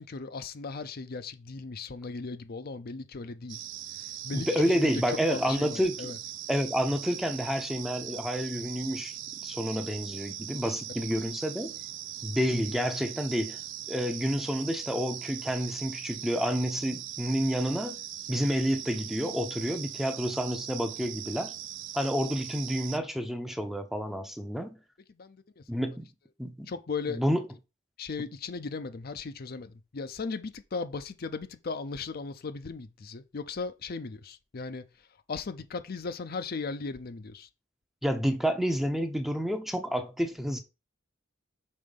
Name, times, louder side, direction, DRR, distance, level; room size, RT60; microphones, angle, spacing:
voice 1, 0.0-3.6 4.0-4.9 5.3-6.2 11.0-11.1 25.1-25.8 26.7-27.2 28.0-37.5, left 4 dB, 50° left, 0.5 m, -37 dB
sound 1, 3.5-23.0, right 11 dB, 70° right, 0.5 m, -40 dB
voice 2, 4.3-6.2 6.5-9.1 9.4-11.7 12.2-13.6 13.9-17.9 18.3-21.5 21.9-24.8 25.7-26.1 26.4-26.7 27.1-27.4 38.0-40.6, equal, ahead, 0.7 m, -29 dB
5.5 x 3.8 x 5.3 m
head